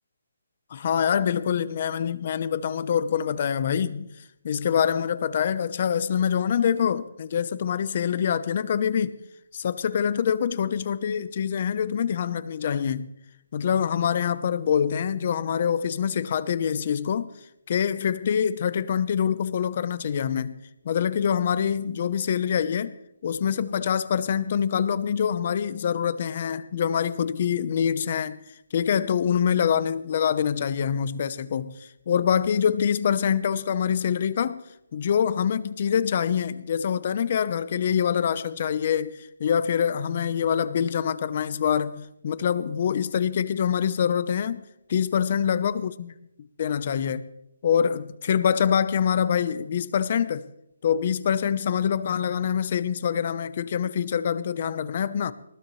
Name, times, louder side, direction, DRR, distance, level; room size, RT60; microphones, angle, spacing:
voice 1, 0.7-4.1 4.4-9.1 9.5-13.1 13.5-17.3 17.7-20.6 20.8-22.9 23.2-28.4 28.7-34.6 34.9-46.1 46.6-47.3 47.6-50.5 50.8-55.3, left 8 dB, 35° left, 0.8 m, -25 dB
20.0 x 16.0 x 3.2 m
hypercardioid pair, 170°, 0 cm